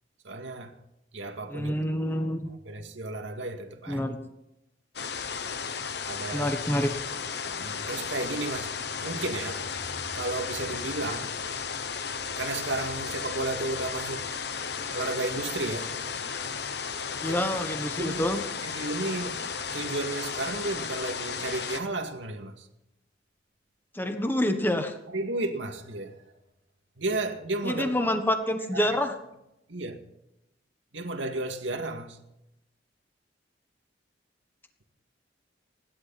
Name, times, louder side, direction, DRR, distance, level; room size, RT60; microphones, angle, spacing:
voice 1, 0.2-0.7 1.1-1.7 2.5-4.1 6.0-6.6 7.5-9.7 10.1-11.4 12.4-14.3 14.9-16.0 17.2-17.4 18.0-18.2 18.6-19.4 19.7-22.7 25.1-26.2 27.0-27.9 28.7-29.0 29.7-30.0 30.9-32.2, right 2 dB, 85° right, 2.2 m, -33 dB
voice 2, 1.5-2.5 3.9-4.2 6.3-6.9 17.2-18.4 23.9-24.9 27.6-29.1, left 1 dB, 10° left, 1.3 m, -27 dB
sound 1, 5.0-21.8, left 6 dB, 60° left, 1.1 m, -34 dB
29.0 x 11.5 x 4.3 m
head